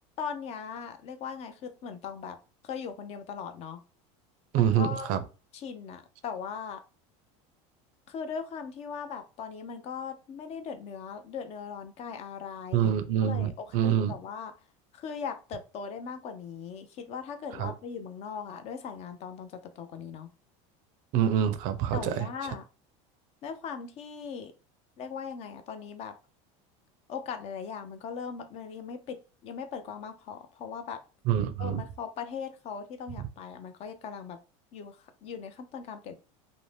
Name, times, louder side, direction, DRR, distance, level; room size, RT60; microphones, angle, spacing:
voice 1, 0.2-2.4 2.6-3.8 4.5-5.1 5.5-6.8 8.1-12.9 13.2-14.5 14.9-20.3 21.9-22.6 23.4-24.5 25.0-26.1 27.1-31.0 31.6-34.4 34.7-36.1, left 6 dB, 40° left, 8 dB, 0.4 m, -39 dB
voice 2, 4.5-5.2 12.7-14.1 17.6-17.7 21.1-22.3 31.3-31.8, right 9 dB, 55° right, 11 dB, 0.4 m, -26 dB
2.6 x 2.1 x 3.1 m, 0.33 s
supercardioid pair, 130°, 16 cm